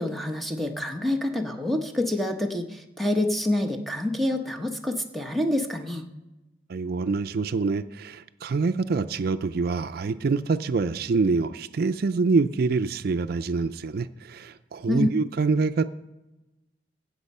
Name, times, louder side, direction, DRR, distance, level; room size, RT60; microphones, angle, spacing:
voice 1, 0.0-6.0 14.9-15.1, left 1 dB, ahead, 4 dB, 1.0 m, -27 dB
voice 2, 6.7-15.9, right 4 dB, 60° right, 11 dB, 0.4 m, -25 dB
16.5 x 6.5 x 5.4 m, 1.0 s
head